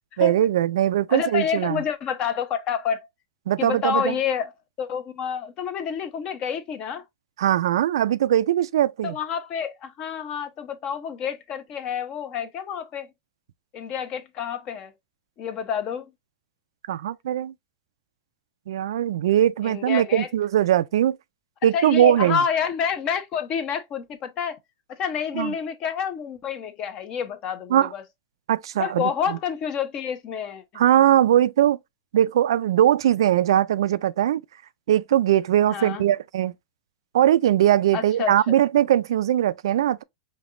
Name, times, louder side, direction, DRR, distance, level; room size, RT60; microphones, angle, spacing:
voice 1, 0.2-1.8 3.5-4.1 7.4-9.2 16.9-17.5 18.7-21.2 21.6-22.4 25.3-25.5 27.7-27.9 28.5-29.4 30.8-31.8 32.1-34.4 34.9-36.5 37.1-40.0, right 11 dB, 80° right, 0.3 m, -20 dB
voice 2, 1.1-3.1 3.6-4.5 4.8-7.0 9.0-13.1 13.7-14.9 15.4-16.1 19.6-20.3 21.7-24.6 25.0-28.0 28.8-30.8 35.7-36.0 37.9-38.3, left 7 dB, 35° left, 0.8 m, -28 dB
5.2 x 2.9 x 2.5 m
supercardioid pair, 140°, 2 cm